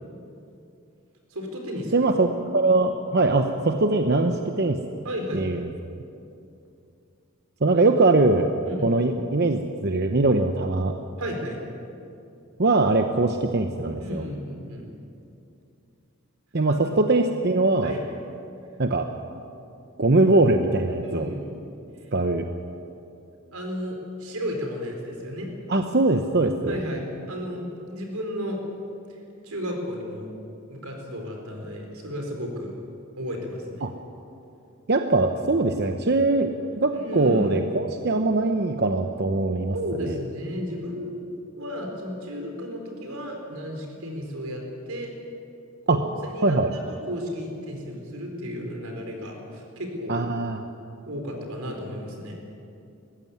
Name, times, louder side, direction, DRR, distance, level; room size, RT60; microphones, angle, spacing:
voice 1, 1.3-2.0 5.0-5.5 8.7-8.9 11.2-11.6 14.0-14.9 16.7-16.8 17.8-18.0 21.0-21.6 22.0-22.1 23.5-25.5 26.7-28.6 29.1-29.2 29.4-30.3 30.7-32.7 33.2-33.9 37.0-37.5 39.7-41.2 41.6-45.1 45.9-50.2 51.0-52.3, equal, 85° right, 2 dB, 4.5 m, -33 dB
voice 2, 1.9-2.3 2.5-4.8 5.3-5.6 7.6-8.5 8.8-10.9 12.6-14.3 16.5-17.9 18.8-19.1 20.0-21.3 22.1-22.5 25.7-26.8 33.8-33.9 34.9-39.7 40.0-40.2 45.9-46.0 46.4-46.7 50.1-50.6, right 2 dB, 50° right, 5 dB, 0.9 m, -22 dB
21.0 x 15.0 x 9.6 m, 2.7 s
head